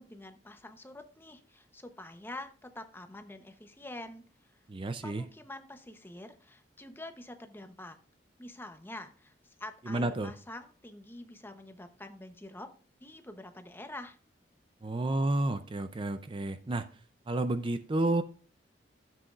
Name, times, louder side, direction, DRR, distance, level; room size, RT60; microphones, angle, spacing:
voice 1, 0.0-4.6 5.0-8.0 8.4-12.7 13.0-14.2, left 1 dB, 10° left, 7 dB, 0.9 m, -46 dB
voice 2, 4.7-5.2 9.9-10.3 14.8-16.9 17.3-18.2, right 2 dB, 30° right, 10 dB, 0.5 m, -30 dB
12.5 x 7.6 x 2.5 m, 0.38 s
head